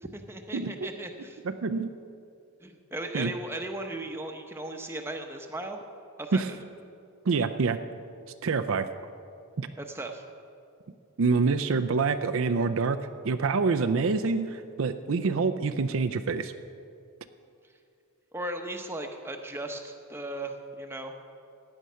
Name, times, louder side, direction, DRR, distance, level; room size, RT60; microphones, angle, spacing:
voice 1, 0.0-1.4 2.6-5.8 6.2-6.6 9.8-10.2 18.3-21.1, right 1 dB, 10° right, 4 dB, 0.8 m, -37 dB
voice 2, 1.5-1.9 3.1-3.3 6.3-6.5 7.3-7.8 8.4-8.9 9.6-9.7 11.2-13.0 13.2-16.5, right 4 dB, 60° right, 8 dB, 0.5 m, -26 dB
15.5 x 9.6 x 5.6 m, 2.5 s
head